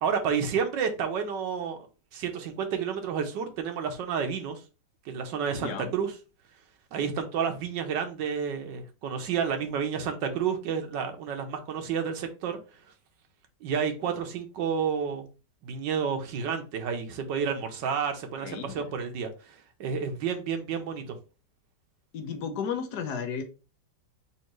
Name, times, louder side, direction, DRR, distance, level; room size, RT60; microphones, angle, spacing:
voice 1, 0.0-1.9 2.1-4.6 5.0-6.1 6.9-12.6 13.6-15.2 15.6-21.2, right 6 dB, 90° right, 1.5 m, -30 dB
voice 2, 5.6-5.9 18.4-18.9 22.1-23.4, left 6 dB, 70° left, 1.3 m, -33 dB
4.2 x 2.8 x 4.4 m
omnidirectional pair, 1.9 m